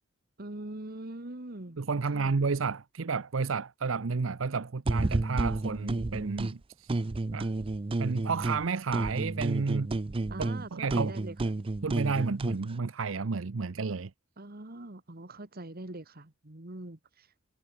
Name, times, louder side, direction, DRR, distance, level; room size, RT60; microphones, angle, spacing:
voice 1, 0.4-1.8 2.1-2.4 10.3-11.6 14.4-17.3, right 2 dB, 50° right, 2.0 m, -43 dB
voice 2, 1.8-7.0 7.3-7.5 8.0-9.9 10.4-11.1 11.8-14.1, right 4 dB, 80° right, 0.7 m, -31 dB
sound 1, 4.8-6.5 6.9-8.6 8.9-12.6, right 2 dB, 25° right, 0.5 m, -31 dB
head